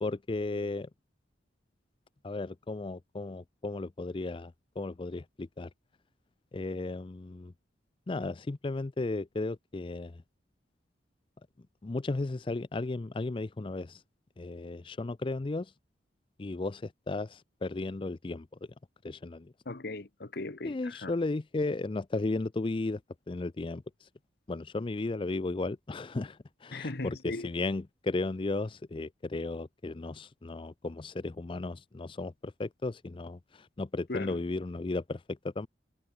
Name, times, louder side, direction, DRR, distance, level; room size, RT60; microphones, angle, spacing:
voice 1, 0.0-0.9 2.2-5.7 6.5-7.5 8.1-10.2 11.8-14.0 14.4-15.7 16.4-18.5 19.0-19.5 20.6-23.0 23.3-24.1 24.5-35.7, left 2 dB, 30° left, 0.4 m, -35 dB
voice 2, 19.6-21.1 26.7-27.5 34.1-34.4, left 2 dB, 55° left, 1.2 m, -38 dB
head